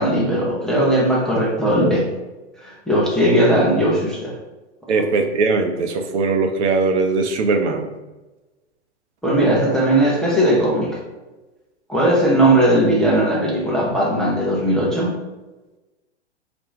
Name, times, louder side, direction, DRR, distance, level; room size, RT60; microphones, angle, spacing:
voice 1, 0.0-2.1 2.6-4.4 4.9-5.0 9.2-11.0 11.9-15.2, right 1 dB, ahead, -5 dB, 0.6 m, -18 dB
voice 2, 4.9-7.9, right 4 dB, 75° right, 6 dB, 0.7 m, -20 dB
4.3 x 2.6 x 3.2 m, 1.1 s
hypercardioid pair, 130°, 35 cm